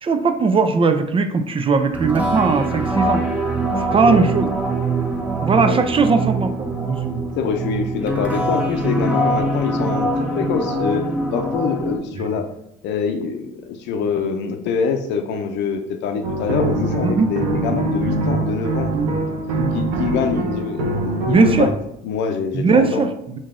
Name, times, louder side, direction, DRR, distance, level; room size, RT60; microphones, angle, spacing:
voice 1, 0.0-3.2 3.8-4.5 5.4-7.2 17.0-17.3 18.9-19.1 19.6-19.7 21.3-21.7 22.5-23.4, right 4 dB, 30° right, 8 dB, 0.4 m, -19 dB
sound 1, 1.9-12.0, right 2 dB, 5° right, 0.8 m, -23 dB
voice 2, 7.4-12.5 12.8-19.2 19.7-21.7 22.0-23.0, left 6 dB, 65° left, 5 dB, 0.6 m, -24 dB
sound 2, 16.2-21.7, right 2 dB, 80° right, 0.6 m, -23 dB
3.7 x 2.6 x 3.6 m, 0.79 s
hypercardioid pair, 65°, 19 cm